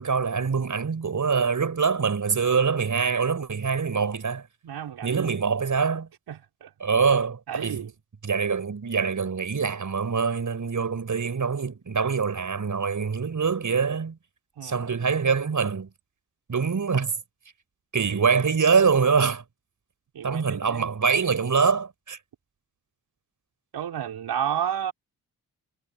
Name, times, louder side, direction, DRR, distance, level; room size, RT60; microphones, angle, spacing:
voice 1, 0.0-4.4 5.0-6.1 6.8-7.9 8.2-14.2 14.6-15.9 16.5-17.1 17.9-19.4 20.2-22.2, right 5 dB, 45° right, 6.2 m, -24 dB
voice 2, 4.6-5.3 6.3-6.7 7.5-7.9 14.6-14.9 20.1-20.9 23.7-24.9, right 9 dB, 70° right, 5.7 m, -31 dB
hypercardioid pair, 40°, 41 cm